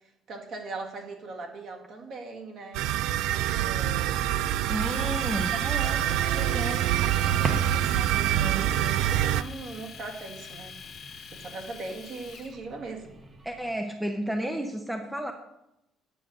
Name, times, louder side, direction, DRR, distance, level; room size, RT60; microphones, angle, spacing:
voice 1, 0.3-2.8 3.6-4.4 5.8-6.6 7.0-10.8 11.3-13.1, right 3 dB, 45° right, 2 dB, 1.9 m, -40 dB
sound 1, 2.7-9.4, right 12 dB, 80° right, 0.3 m, -26 dB
voice 2, 4.7-6.0 6.3-6.9 13.4-15.3, equal, 5° right, 5 dB, 0.7 m, -32 dB
Domestic sounds home sounds, 4.8-12.5, left 7 dB, 40° left, 1.1 m, -45 dB
sound 2, 5.5-13.7, right 2 dB, 25° right, 1.1 m, -42 dB
9.9 x 6.3 x 6.7 m, 0.85 s
cardioid pair, 150°, 0 cm